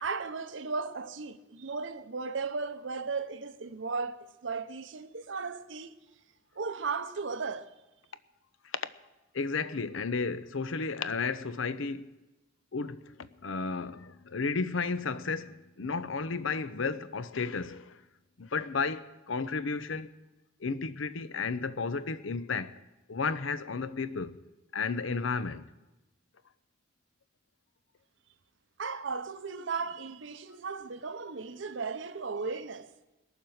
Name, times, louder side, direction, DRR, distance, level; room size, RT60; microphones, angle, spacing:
voice 1, 0.0-5.9 6.6-7.7 28.8-32.9, right 4 dB, 70° right, 0.8 m, -36 dB
voice 2, 9.3-12.1 12.7-18.0 18.4-20.1 20.6-22.8 23.1-24.4 24.7-25.6, left 4 dB, 80° left, 0.7 m, -33 dB
21.5 x 7.3 x 6.4 m
head